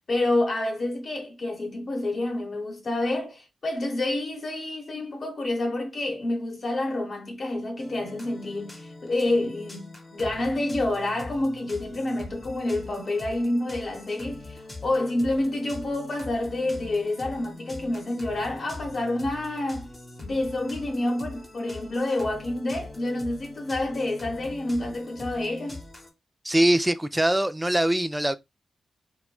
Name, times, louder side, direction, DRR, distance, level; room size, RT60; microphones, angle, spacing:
voice 1, 0.1-19.9 20.2-25.8, left 2 dB, 55° left, 1.0 m, -28 dB
sound 1, 7.8-26.1, left 2 dB, 30° left, 0.9 m, -42 dB
voice 2, 26.4-28.4, right 1 dB, 10° right, 0.4 m, -22 dB
3.0 x 2.2 x 2.2 m
supercardioid pair, 45°, 0 cm